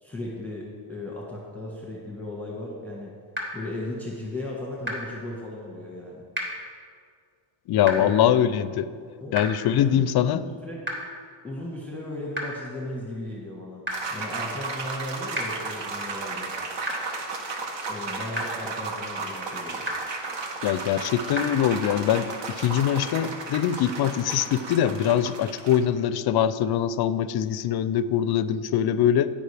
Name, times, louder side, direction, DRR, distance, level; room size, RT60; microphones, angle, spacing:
voice 1, 0.0-3.1 3.5-6.2 8.0-8.3 9.2-9.4 9.7-10.8 11.4-13.8 14.1-16.5 17.9-19.8, left 1 dB, 5° left, -3 dB, 1.3 m, -36 dB
sound 1, 3.3-3.4 4.8-4.9 6.3-6.4 7.8-7.9 9.3-9.4 10.8-10.9 12.3-12.4 13.8-13.9 15.3-15.4 16.8-16.9 18.3-18.4 19.8-19.9 21.3-21.4, equal, 20° right, 2.0 m, -29 dB
voice 2, 7.7-8.9 9.3-10.4 20.6-29.3, left 10 dB, 50° left, 14 dB, 0.5 m, -23 dB
sound 2, 13.9-25.8, right 3 dB, 60° right, 1.2 m, -34 dB
14.5 x 5.2 x 3.4 m, 2.1 s
cardioid pair, 95°, 49 cm